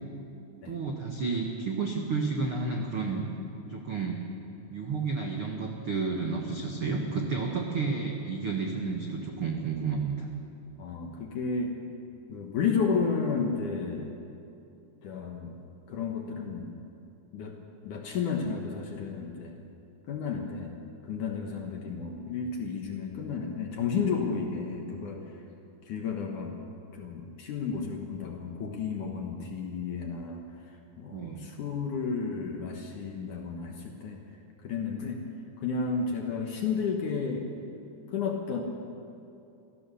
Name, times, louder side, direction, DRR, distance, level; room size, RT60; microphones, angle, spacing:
voice 1, 0.6-3.3 3.7-4.2 4.7-10.3 31.1-31.4, right 4 dB, 70° right, 1 dB, 1.2 m, -31 dB
voice 2, 10.8-11.8 12.3-14.1 15.0-15.6 15.9-16.7 17.3-17.6 17.8-19.6 20.1-20.8 21.0-25.2 25.9-26.5 26.9-30.4 31.0-34.2 34.6-35.2 35.6-37.5 38.1-38.6, left 5 dB, 60° left, 2 dB, 2.3 m, -32 dB
25.0 x 16.0 x 7.0 m, 2.7 s
omnidirectional pair, 4.9 m